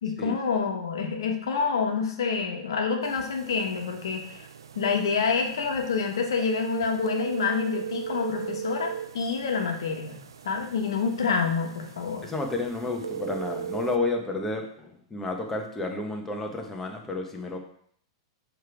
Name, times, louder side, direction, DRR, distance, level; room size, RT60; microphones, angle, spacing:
voice 1, 0.0-4.5 4.7-12.3, left 5 dB, 70° left, 3 dB, 1.2 m, -27 dB
sound 1, 3.0-14.0, right 8 dB, 75° right, 0.4 m, -39 dB
voice 2, 12.2-17.6, left 3 dB, 10° left, 2 dB, 1.2 m, -31 dB
6.5 x 3.3 x 4.8 m, 0.64 s
figure-of-eight pair, 100°, 2 cm